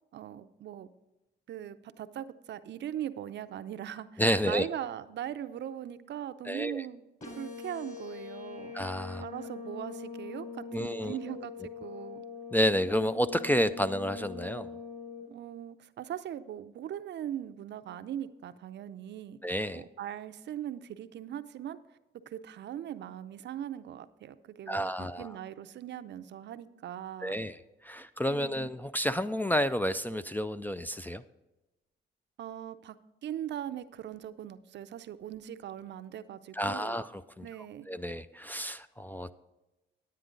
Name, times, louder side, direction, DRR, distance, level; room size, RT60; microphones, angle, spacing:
voice 1, 0.1-0.9 1.5-7.0 7.4-12.2 15.3-19.4 19.7-21.8 22.3-27.5 28.3-28.7 32.4-33.0 33.2-37.0 37.4-37.9, right 10 dB, 60° right, 12 dB, 0.6 m, -40 dB
voice 2, 4.2-4.7 6.5-6.9 8.7-9.2 10.7-11.1 12.5-14.7 19.4-19.8 24.7-25.3 27.2-27.6 27.8-31.2 36.5-37.5 37.9-39.3, equal, 10° left, 12 dB, 0.3 m, -30 dB
sound 1, 7.2-15.2, left 5 dB, 40° left, 4.2 m, -43 dB
9.9 x 9.4 x 3.8 m, 0.99 s
cardioid pair, 90°, 20 cm